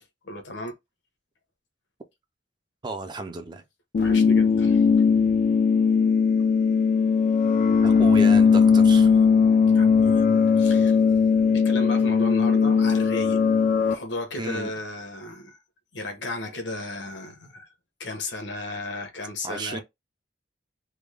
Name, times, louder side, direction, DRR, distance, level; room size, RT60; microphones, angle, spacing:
voice 1, 0.2-0.7 4.0-4.9 9.7-10.2 10.5-11.0 11.5-13.4 13.9-15.6 15.9-17.7 18.0-19.8, left 1 dB, 75° left, 1.0 m, -34 dB
voice 2, 2.8-3.6 7.8-9.2 14.4-14.7 19.4-19.8, right 2 dB, 25° right, 0.4 m, -33 dB
sound 1, 3.9-13.9, left 5 dB, 45° left, 0.3 m, -19 dB
3.4 x 2.1 x 3.3 m
head